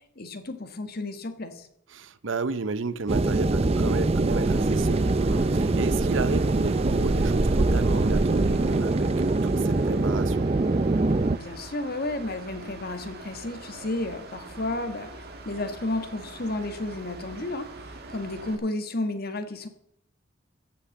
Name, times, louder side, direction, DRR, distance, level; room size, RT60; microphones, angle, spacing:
voice 1, 0.2-1.7 11.3-19.7, left 2 dB, 50° left, 1.4 m, -32 dB
voice 2, 1.9-10.5, right 4 dB, 70° right, 0.7 m, -32 dB
sound 1, 3.1-11.4, right 2 dB, 30° right, 0.5 m, -23 dB
Mechanical fan, 4.4-18.6, right 2 dB, 50° right, 1.9 m, -43 dB
15.0 x 5.9 x 7.9 m
head